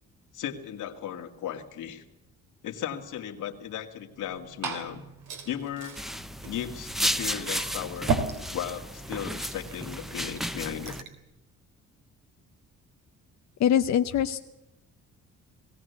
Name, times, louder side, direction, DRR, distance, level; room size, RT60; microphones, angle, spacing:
voice 1, 0.3-2.0 2.6-5.0 5.5-6.0 6.4-8.2 8.5-11.0, left 10 dB, 80° left, 4 dB, 2.3 m, -36 dB
Liquid, 4.1-11.2, right 4 dB, 90° right, 3.4 m, -37 dB
sound 1, 6.0-11.0, equal, ahead, 0.9 m, -33 dB
voice 2, 13.6-14.4, left 9 dB, 65° left, 7 dB, 0.8 m, -23 dB
20.0 x 16.5 x 8.2 m, 0.94 s
cardioid pair, 90°, 30 cm